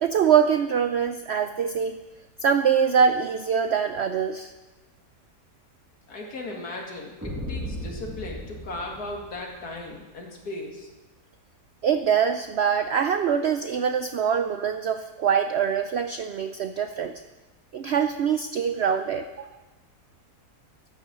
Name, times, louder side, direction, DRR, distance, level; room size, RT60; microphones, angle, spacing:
voice 1, 0.0-2.0 2.4-4.5 11.8-17.2 17.7-19.5, right 7 dB, 70° right, 9 dB, 0.6 m, -24 dB
voice 2, 6.1-10.9, left 2 dB, 70° left, 0 dB, 2.7 m, -37 dB
sound 1, 7.2-9.8, equal, 10° right, 1.7 m, -36 dB
13.0 x 9.3 x 6.1 m, 1.2 s
omnidirectional pair, 1.7 m